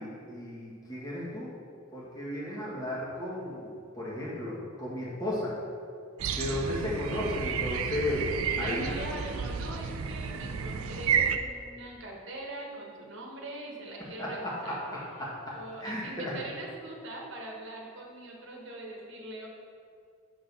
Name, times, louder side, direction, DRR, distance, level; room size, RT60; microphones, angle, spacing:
voice 1, 0.0-1.5 1.9-5.5 6.3-9.0 14.2-16.4, left 1 dB, 15° left, -7 dB, 1.6 m, -34 dB
sound 1, 6.2-11.4, right 7 dB, 85° right, 0.4 m, -31 dB
voice 2, 8.4-14.8 15.5-19.5, right 2 dB, 60° right, -1 dB, 1.1 m, -42 dB
6.5 x 3.9 x 5.3 m, 2.3 s
head